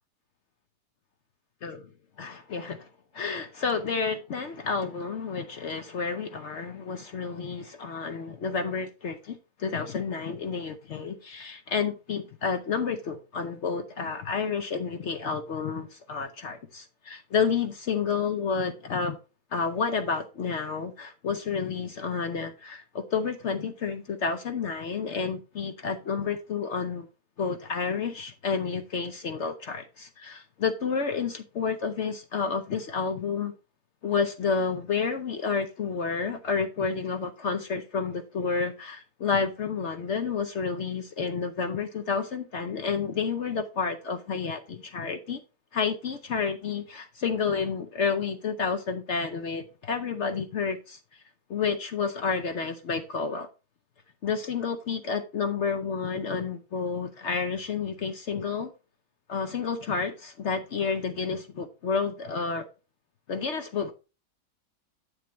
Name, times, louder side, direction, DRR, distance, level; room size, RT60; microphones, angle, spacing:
voice 1, 2.2-2.9 3.1-19.2 19.5-27.1 27.4-33.5 34.0-45.4 45.7-51.2 51.5-53.5 54.2-58.7 59.3-62.6 63.3-63.9, left 5 dB, 60° left, 0.7 m, -30 dB
8.3 x 6.8 x 3.0 m
omnidirectional pair, 1.9 m